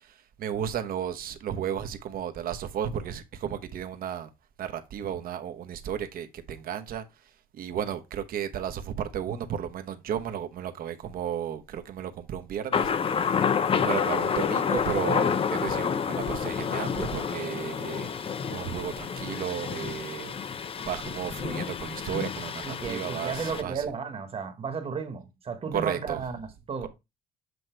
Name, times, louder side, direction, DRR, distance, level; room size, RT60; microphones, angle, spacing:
voice 1, 0.0-4.3 4.6-12.9 13.2-13.4 13.8-18.1 18.5-20.3 20.9-23.9 25.7-26.2, right 9 dB, 60° right, 1.0 m, -34 dB
Thunder, 12.7-23.6, left 6 dB, 35° left, 0.6 m, -29 dB
voice 2, 22.6-26.9, right 5 dB, 35° right, 1.3 m, -34 dB
7.9 x 3.0 x 4.5 m
cardioid pair, 110°, 17 cm